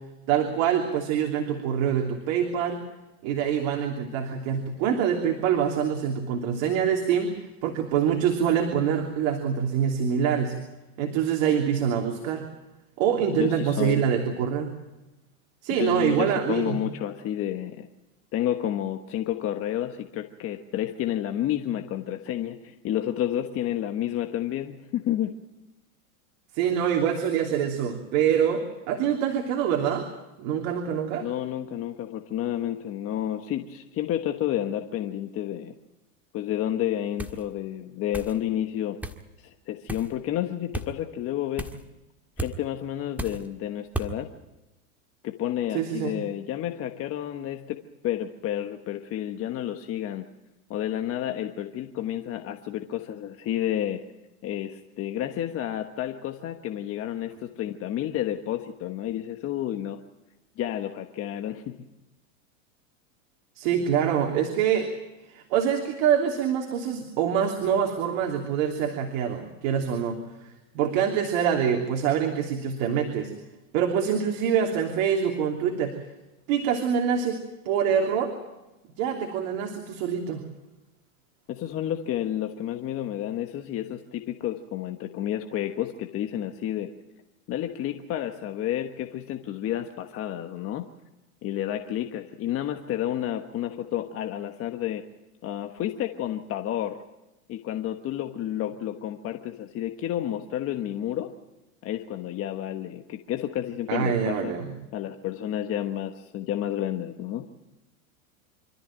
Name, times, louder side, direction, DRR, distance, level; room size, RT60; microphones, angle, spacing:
voice 1, 0.3-2.8 3.2-10.6 11.0-12.4 13.0-14.7 15.6-16.8 26.5-30.1 30.4-31.3 45.7-46.1 63.6-64.9 65.3-73.3 73.7-76.0 76.5-78.3 79.0-80.4 103.9-104.7, right 8 dB, 55° right, 2 dB, 3.2 m, -25 dB
voice 2, 13.3-14.0 15.7-17.9 18.3-25.3 31.2-35.7 36.3-39.0 39.4-41.8 42.4-44.3 45.2-50.2 50.7-54.0 54.4-60.0 60.6-61.8 81.5-86.9 87.5-90.8 91.4-95.1 95.4-97.0 97.5-101.3 101.8-104.5 104.9-107.4, left 11 dB, 30° left, 5 dB, 1.3 m, -30 dB
sound 1, 37.2-37.4 38.1-38.4 39.0-39.2 39.9-40.1 40.7-40.9 41.6-41.8 42.4-42.6 43.2-43.5 43.9-44.1, right 1 dB, 5° right, 1.6 m, -33 dB
26.5 x 14.0 x 8.9 m, 1.0 s
supercardioid pair, 135°, 43 cm